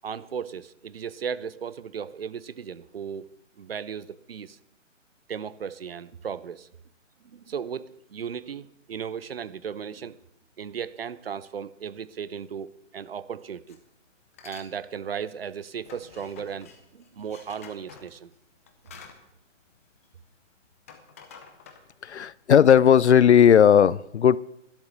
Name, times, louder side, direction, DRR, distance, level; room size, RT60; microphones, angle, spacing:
voice 1, 0.0-3.3 3.6-4.6 5.3-6.7 7.3-10.2 10.6-13.8 14.4-18.3, right 7 dB, 50° right, 0.7 m, -36 dB
sound 1, 13.7-13.9 14.3-14.7 15.0-20.3 20.6-22.2, left 6 dB, 10° left, 0.6 m, -49 dB
voice 2, 22.0-24.4, left 8 dB, 60° left, 0.5 m, -16 dB
12.0 x 10.5 x 6.7 m
figure-of-eight pair, 140°, 38 cm